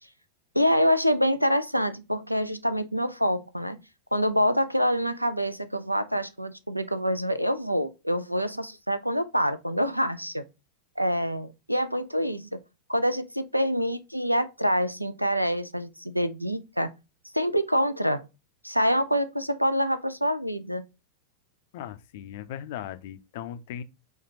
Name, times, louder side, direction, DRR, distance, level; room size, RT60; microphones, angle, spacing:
voice 1, 0.5-3.8 4.1-10.4 11.0-12.6 12.9-16.9 17.3-18.3 18.6-20.8, equal, 90° right, 0.4 m, -26 dB
voice 2, 21.7-23.8, left 10 dB, 50° left, 0.4 m, -38 dB
4.3 x 2.4 x 2.7 m
figure-of-eight pair, 90°, 0 cm